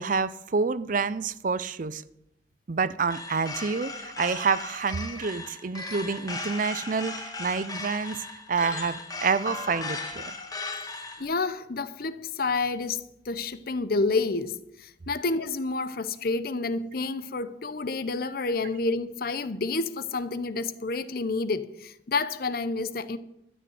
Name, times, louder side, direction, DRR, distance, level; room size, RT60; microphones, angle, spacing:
voice 1, 0.0-2.0 2.7-10.3, right 5 dB, 50° right, 0.5 m, -28 dB
sound 1, 3.1-11.2, left 3 dB, 20° left, 1.5 m, -37 dB
voice 2, 11.2-23.2, left 3 dB, 55° left, 0.7 m, -29 dB
12.5 x 6.3 x 9.3 m
head